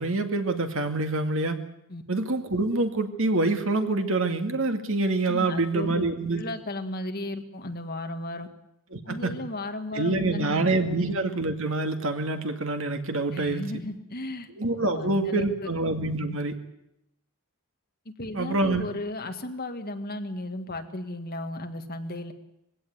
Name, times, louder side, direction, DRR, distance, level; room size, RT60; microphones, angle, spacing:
voice 1, 0.0-1.6 2.1-6.4 8.9-9.3 9.9-13.6 14.6-16.5 18.3-18.8, right 2 dB, 65° right, 6 dB, 2.2 m, -26 dB
voice 2, 5.3-6.1 6.4-8.5 9.1-11.0 13.3-14.5 14.8-15.7 16.0-16.4 18.1-22.3, left 1 dB, 45° left, 6 dB, 1.9 m, -35 dB
21.5 x 16.5 x 9.4 m, 0.82 s
head